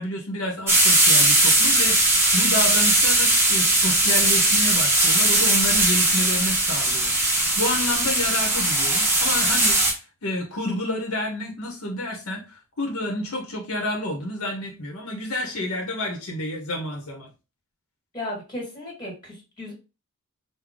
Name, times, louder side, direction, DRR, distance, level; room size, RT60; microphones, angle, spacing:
voice 1, 0.0-17.3, left 1 dB, 70° left, 1 dB, 0.9 m, -29 dB
sound 1, 0.7-9.9, right 1 dB, 10° right, 1.0 m, -19 dB
voice 2, 18.1-19.7, left 1 dB, 20° left, -2 dB, 1.6 m, -35 dB
3.8 x 2.2 x 3.5 m, 0.29 s
head